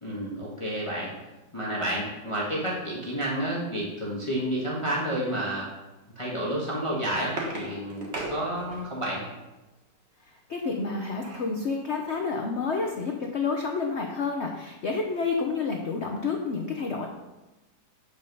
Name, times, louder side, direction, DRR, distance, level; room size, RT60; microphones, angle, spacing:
voice 1, 0.0-1.1 1.5-5.7 6.1-9.2, right 1 dB, 15° left, -5 dB, 1.4 m, -30 dB
sound 1, 7.0-9.1 10.7-11.6 12.1-12.2 12.4-12.7, right 1 dB, 35° right, 1.5 m, -38 dB
voice 2, 10.2-17.1, left 4 dB, 60° left, 2 dB, 0.7 m, -29 dB
8.3 x 5.4 x 5.4 m, 1.1 s
omnidirectional pair, 2.2 m